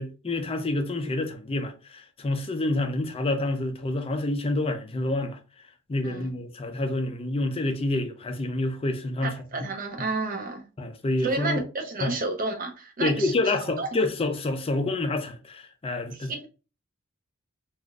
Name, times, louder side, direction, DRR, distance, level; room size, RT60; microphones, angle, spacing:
voice 1, 0.0-5.4 5.9-9.7 10.8-11.6 12.0-12.1 13.0-16.3, left 2 dB, 30° left, 0.5 m, -28 dB
voice 2, 9.2-10.6 11.2-13.3 13.8-13.9 16.1-16.5, right 3 dB, 45° right, 0.7 m, -31 dB
3.6 x 2.5 x 2.3 m
head